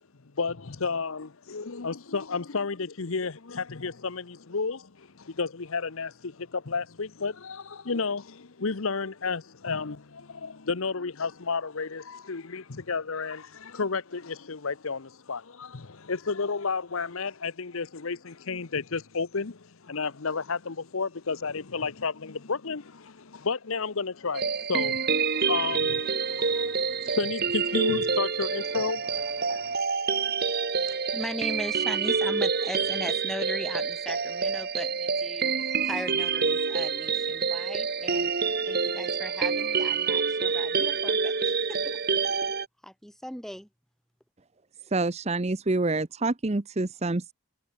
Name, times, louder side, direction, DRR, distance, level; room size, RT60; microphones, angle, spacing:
voice 1, 0.0-29.8, left 4 dB, 65° left, 0.9 m, -32 dB
sound 1, 24.3-42.7, right 5 dB, 45° right, 1.5 m, -27 dB
voice 2, 30.9-38.3 38.7-42.2 42.8-43.7, equal, ahead, 5.9 m, -38 dB
voice 3, 44.9-47.3, right 2 dB, 30° right, 0.7 m, -27 dB
head